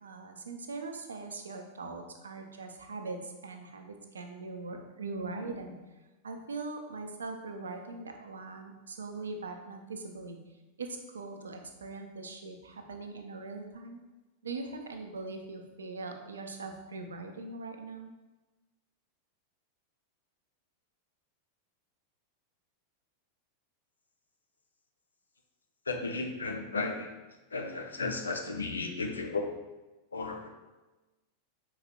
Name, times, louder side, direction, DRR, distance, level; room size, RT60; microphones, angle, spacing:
voice 1, 0.0-5.8 6.2-10.4 10.8-14.0 14.4-18.1, right 3 dB, 70° right, 5 dB, 0.5 m, -41 dB
voice 2, 25.9-27.1 27.5-29.5 30.1-30.5, left 3 dB, 75° left, 4 dB, 0.5 m, -34 dB
5.5 x 4.0 x 2.3 m, 1.1 s
figure-of-eight pair, 90°, 0 cm